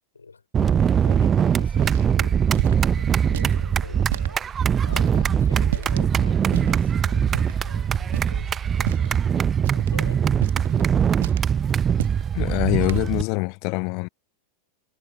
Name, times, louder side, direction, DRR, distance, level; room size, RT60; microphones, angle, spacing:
voice 1, 0.1-9.4 9.7-11.0, left 4 dB, 75° left, 5.0 m, -42 dB
sound 1, 0.5-13.2, right 8 dB, 25° right, 0.8 m, -22 dB
sound 2, 1.8-2.0 2.5-2.8 3.3-3.5 4.1-4.3 4.9-5.1 5.7-6.1 6.5-6.8 7.3-7.6 8.1-8.4 8.8-9.2 9.6-9.9 10.4-10.8 11.2-11.5 11.9-12.2 12.8-13.1, right 14 dB, 55° right, 1.5 m, -32 dB
voice 2, 12.3-14.1, left 33 dB, 45° left, 0.8 m, -24 dB
figure-of-eight pair, 90°, 0 cm